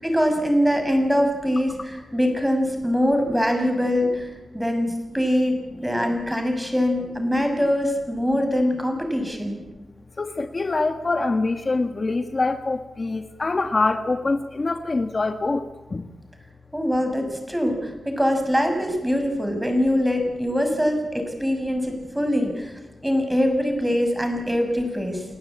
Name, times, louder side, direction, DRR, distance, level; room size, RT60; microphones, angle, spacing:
voice 1, 0.0-4.3 4.5-9.6 16.7-22.7 23.0-25.2, equal, 5° right, 5 dB, 6.5 m, -23 dB
voice 2, 10.2-16.1, left 3 dB, 45° left, 7 dB, 1.4 m, -25 dB
30.0 x 18.5 x 8.7 m, 1.1 s
wide cardioid pair, 85°, 0 cm